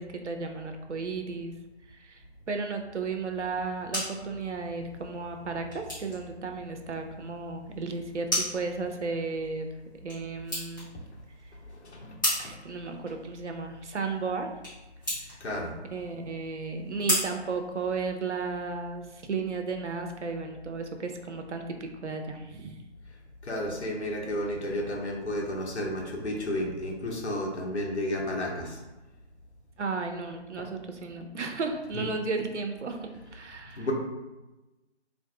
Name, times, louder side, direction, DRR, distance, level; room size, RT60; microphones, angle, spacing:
voice 1, 0.0-1.5 1.9-9.7 10.0-10.9 12.4-14.5 15.2-15.4 15.8-22.8 29.8-33.9, right 4 dB, 80° right, 5 dB, 0.6 m, -34 dB
sound 1, 3.5-18.4, equal, 20° left, 0.9 m, -37 dB
voice 2, 11.8-12.5 15.4-15.7 23.4-28.8 31.9-32.1 33.8-33.9, left 1 dB, 70° left, -1 dB, 0.8 m, -32 dB
3.4 x 2.5 x 2.3 m, 1.1 s
figure-of-eight pair, 155°, 34 cm